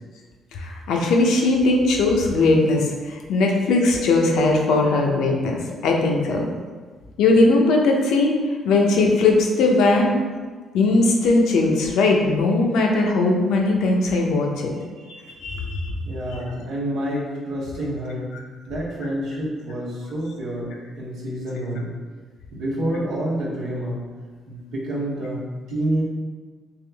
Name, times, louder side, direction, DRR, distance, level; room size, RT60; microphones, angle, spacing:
voice 1, 0.5-6.4 7.2-8.4 8.6-10.1 10.7-14.8 15.4-15.9, left 2 dB, 85° left, 1 dB, 0.6 m, -19 dB
voice 2, 15.0-15.6 16.0-18.3 18.7-21.9 22.5-24.1 24.5-26.0, right 1 dB, 85° right, -5 dB, 1.1 m, -28 dB
3.5 x 3.0 x 3.4 m, 1.5 s
cardioid pair, 90°, 0 cm